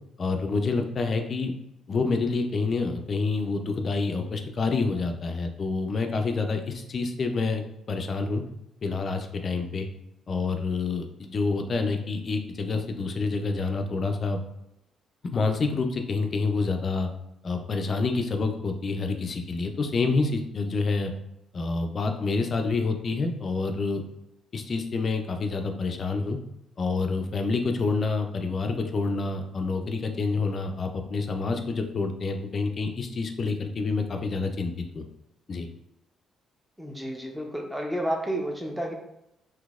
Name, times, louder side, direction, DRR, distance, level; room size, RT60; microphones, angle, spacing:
voice 1, 0.2-1.5 1.9-8.4 8.8-9.9 10.3-14.4 15.2-17.1 17.4-21.1 21.5-24.0 24.5-26.4 26.8-35.0 35.5-35.7, left 4 dB, 45° left, 5 dB, 0.4 m, -28 dB
voice 2, 36.8-38.9, right 1 dB, 5° right, 1 dB, 0.6 m, -31 dB
3.9 x 2.7 x 2.4 m, 0.85 s
cardioid pair, 90°, 0 cm